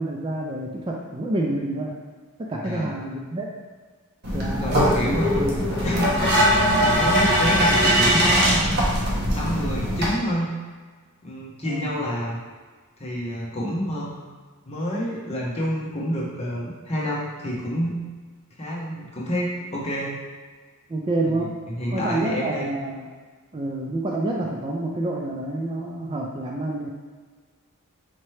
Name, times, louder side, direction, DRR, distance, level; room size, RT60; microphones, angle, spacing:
voice 1, 0.0-1.9 2.5-3.5 4.3-5.6 11.6-11.9 20.9-21.5 21.9-23.0 23.5-26.9, right 2 dB, 25° right, -2 dB, 0.4 m, -28 dB
voice 2, 2.6-3.0 4.3-5.4 5.8-6.0 6.8-10.5 11.2-12.4 13.0-14.1 14.7-18.0 18.6-20.2 21.2-22.8, equal, 30° left, -5 dB, 0.9 m, -28 dB
sound 1, 4.2-10.1, equal, 50° right, 0.9 m, -20 dB
4.4 x 2.9 x 3.2 m, 1.5 s
head